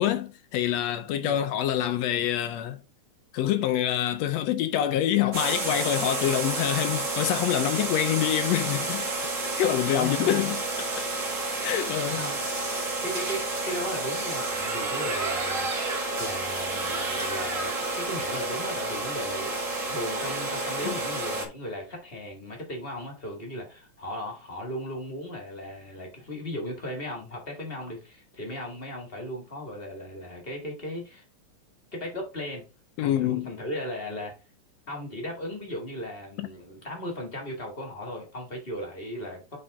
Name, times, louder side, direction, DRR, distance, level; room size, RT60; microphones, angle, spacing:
voice 1, 0.0-2.8 3.3-9.1 9.6-10.6 10.9-11.0 11.6-12.2 20.8-21.0 33.0-33.5 36.4-36.5, left 11 dB, 75° left, 1.6 m, -26 dB
sound 1, 5.3-21.5, right 2 dB, 35° right, 1.5 m, -30 dB
voice 2, 9.9-10.4 12.1-12.4 13.0-15.9 16.2-19.5 19.9-31.2 31.9-32.7 33.0-34.3 34.9-39.6, left 1 dB, 30° left, 1.2 m, -36 dB
8.8 x 3.8 x 3.5 m
omnidirectional pair, 3.5 m